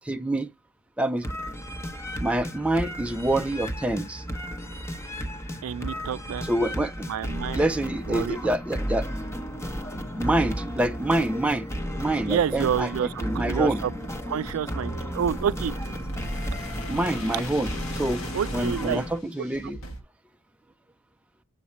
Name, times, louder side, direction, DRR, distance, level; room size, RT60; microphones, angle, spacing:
voice 1, 0.0-0.5 1.0-1.3 2.2-4.2 6.4-7.1 7.5-9.1 10.1-11.7 12.0-12.9 13.2-13.8 16.9-17.7 18.0-18.2 18.5-19.8, right 1 dB, 5° right, 0.3 m, -26 dB
sound 1, 1.2-19.2, equal, 15° left, 0.8 m, -34 dB
voice 2, 5.6-6.5 7.1-7.6 8.1-8.4 12.3-13.9 14.3-15.7 18.3-19.0 19.4-19.5, right 8 dB, 85° right, 0.3 m, -28 dB
sound 2, 9.7-20.0, right 1 dB, 85° left, 2.2 m, -39 dB
7.3 x 4.2 x 4.3 m
head